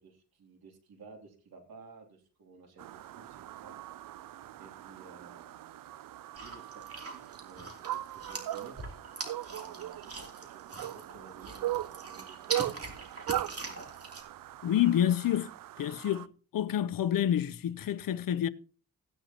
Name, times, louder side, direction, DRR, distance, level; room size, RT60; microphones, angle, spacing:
voice 1, 0.0-3.8 4.6-5.9 6.3-8.8 9.5-13.0 13.6-13.9, right 4 dB, 90° right, 2.9 m, -54 dB
sound 1, 2.8-16.3, right 14 dB, 70° right, 0.5 m, -39 dB
sound 2, 6.3-11.1 11.4-14.2, right 3 dB, 40° right, 2.9 m, -41 dB
voice 2, 14.6-15.5 15.8-16.3 16.5-18.5, left 11 dB, 70° left, 0.7 m, -28 dB
16.0 x 9.9 x 2.9 m
cardioid pair, 90°, 36 cm